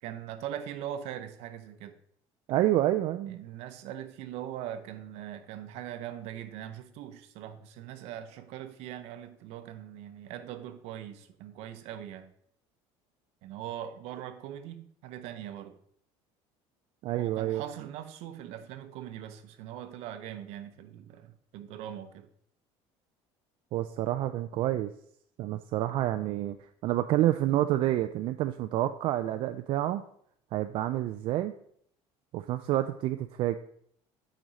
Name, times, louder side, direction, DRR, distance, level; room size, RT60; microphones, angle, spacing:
voice 1, 0.0-2.0 3.3-12.3 13.4-15.8 17.1-22.3, right 10 dB, 65° right, 0.8 m, -41 dB
voice 2, 2.5-3.4 17.0-17.6 23.7-24.9 25.4-26.6 26.8-30.0 30.5-31.5 32.3-33.6, right 14 dB, 50° right, 0.4 m, -28 dB
9.2 x 5.0 x 4.1 m
cardioid pair, 165°, 11 cm